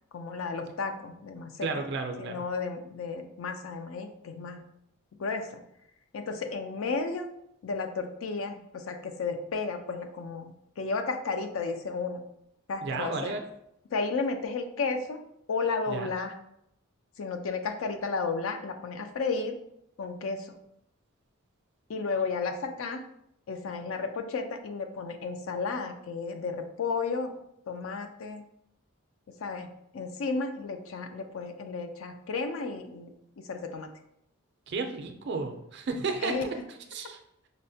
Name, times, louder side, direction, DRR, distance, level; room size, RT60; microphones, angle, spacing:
voice 1, 0.1-1.8 2.2-4.6 5.2-5.6 6.1-7.3 7.6-12.2 12.7-13.3 13.9-15.2 15.5-16.3 17.2-19.5 20.0-20.6 21.9-23.0 23.5-27.4 27.7-28.4 29.4-29.7 29.9-33.1 33.5-33.9 36.2-36.5, left 4 dB, 65° left, 6 dB, 0.4 m, -33 dB
voice 2, 1.6-2.4 12.8-13.5 15.9-16.1 34.7-36.5 36.9-37.2, right 4 dB, 50° right, 5 dB, 0.4 m, -33 dB
5.2 x 2.1 x 2.7 m, 0.76 s
head